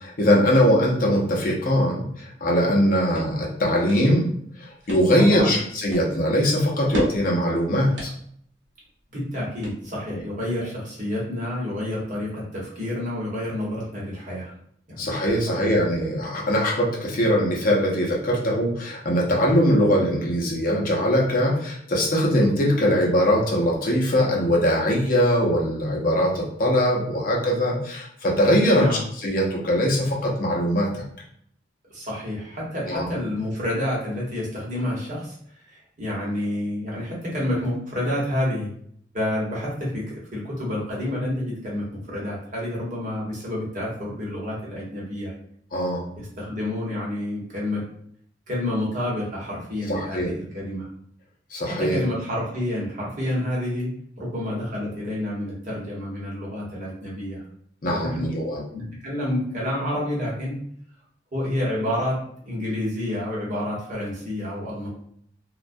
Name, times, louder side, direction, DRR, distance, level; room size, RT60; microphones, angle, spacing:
voice 1, 0.0-4.3 4.6-8.1 10.1-10.2 15.0-31.0 32.8-33.1 45.7-46.1 49.9-50.3 51.5-52.0 57.8-58.6, equal, 50° left, -2 dB, 0.6 m, -21 dB
sound 1, 2.7-10.2, equal, 75° right, 0.8 m, -37 dB
voice 2, 5.2-5.6 9.1-14.5 14.9-15.1 15.5-15.7 28.7-29.1 31.9-35.4 35.6-38.7 39.1-45.3 46.1-47.8 48.5-50.9 51.6-53.9 54.2-57.4 57.9-58.2 58.6-60.5 61.3-62.2 62.4-64.9, left 1 dB, 45° right, -5 dB, 1.0 m, -29 dB
2.2 x 2.2 x 2.5 m, 0.65 s
head